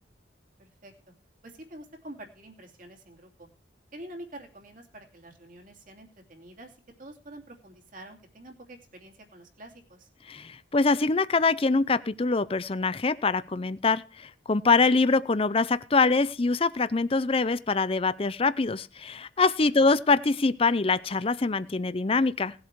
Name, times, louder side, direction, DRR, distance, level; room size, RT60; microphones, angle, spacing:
voice 1, 0.6-0.9 1.4-3.5 3.9-10.1 19.7-19.9, right 1 dB, 45° right, 3 dB, 2.7 m, -47 dB
voice 2, 10.3-22.5, left 3 dB, 30° left, 16 dB, 0.5 m, -24 dB
18.5 x 8.0 x 4.7 m, 0.37 s
head